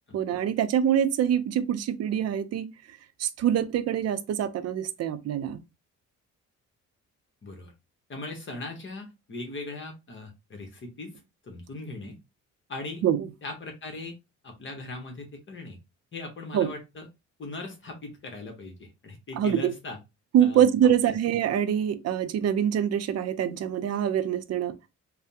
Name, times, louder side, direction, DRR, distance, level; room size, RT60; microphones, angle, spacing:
voice 1, 0.1-2.7 3.2-5.6 13.0-13.3 16.5-16.7 19.4-19.7 20.3-24.7, right 9 dB, 55° right, 0.5 m, -25 dB
voice 2, 7.4-7.7 8.1-12.2 12.7-13.0 13.4-14.2 14.4-15.8 16.1-17.1 17.4-20.0 20.4-20.6 21.0-21.1, left 2 dB, 40° left, 0.9 m, -39 dB
3.3 x 2.0 x 2.7 m
cardioid pair, 90°, 30 cm